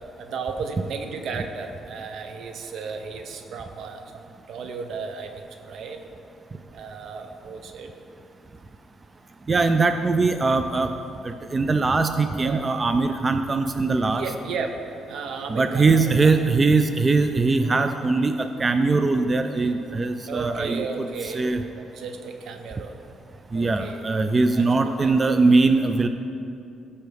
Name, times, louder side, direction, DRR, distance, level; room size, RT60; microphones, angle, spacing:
voice 1, 0.2-6.0 6.7-7.9 12.4-12.6 14.1-14.8 15.1-16.3 20.3-21.5 21.7-23.0 23.5-24.0 24.5-25.4, right 5 dB, 70° right, 6 dB, 0.8 m, -34 dB
voice 2, 9.5-10.9 11.2-14.2 15.5-21.6 23.5-26.1, right 3 dB, 30° right, 8 dB, 0.4 m, -21 dB
15.0 x 5.6 x 3.5 m, 2.6 s
cardioid pair, 95°, 0 cm